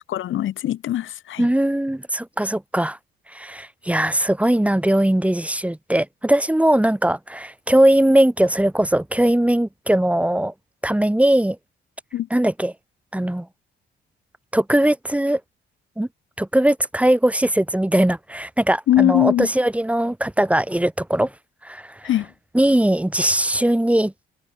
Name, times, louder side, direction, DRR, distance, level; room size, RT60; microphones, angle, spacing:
voice 1, 0.1-1.5 12.1-12.3 18.9-19.5 22.0-22.3, left 12 dB, 75° left, 3.7 m, -21 dB
voice 2, 1.4-3.0 3.3-10.5 10.8-11.6 12.3-12.7 13.1-13.4 14.5-15.4 16.0-16.1 16.4-21.3 21.6-21.8 22.5-24.3, right 1 dB, 5° right, 3.0 m, -20 dB
cardioid pair, 90°, 20 cm